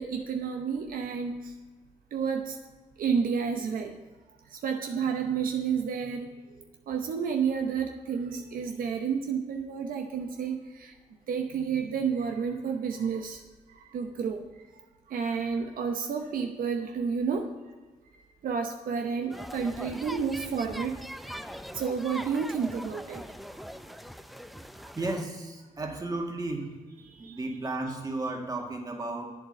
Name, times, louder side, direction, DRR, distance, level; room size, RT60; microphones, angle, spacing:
voice 1, 0.0-1.6 2.1-2.6 3.0-4.0 4.4-11.0 11.3-13.4 13.7-17.7 18.1-21.4 21.7-23.3 23.9-24.0 27.0-27.4, right 6 dB, 75° right, 4 dB, 0.8 m, -31 dB
sound 1, 19.3-25.2, equal, ahead, 0.6 m, -41 dB
voice 2, 25.0-26.7 27.2-29.3, right 2 dB, 25° right, 1 dB, 2.0 m, -33 dB
8.4 x 7.4 x 6.6 m, 1.3 s
cardioid pair, 65°, 15 cm